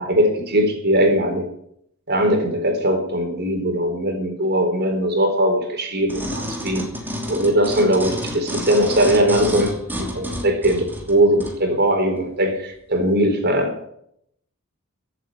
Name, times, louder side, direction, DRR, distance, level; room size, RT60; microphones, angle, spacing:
voice 1, 0.0-1.5 2.1-6.9 7.3-13.9, right 1 dB, 50° right, 4 dB, 4.0 m, -20 dB
sound 1, 6.1-11.6 12.2-12.3, equal, 10° right, 2.8 m, -30 dB
16.0 x 8.4 x 7.4 m, 0.70 s
head